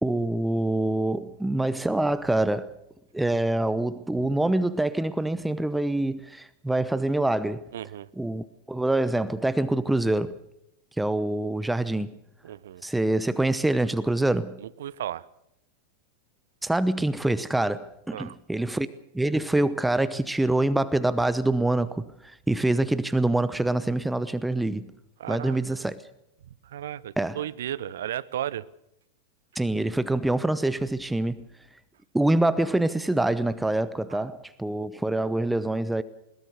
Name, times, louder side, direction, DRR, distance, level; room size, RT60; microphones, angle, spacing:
voice 1, 0.0-2.7 3.1-7.6 8.2-10.4 11.0-12.1 12.8-14.6 16.6-18.9 19.1-24.9 25.3-26.0 27.2-27.4 29.6-31.4 32.1-36.0, right 2 dB, 5° right, 0.8 m, -25 dB
voice 2, 7.7-8.1 12.4-12.8 14.6-15.3 18.1-18.4 25.2-25.9 26.6-28.7 34.1-34.3, right 11 dB, 60° right, 0.7 m, -35 dB
21.0 x 18.5 x 6.8 m
figure-of-eight pair, 90°, 0 cm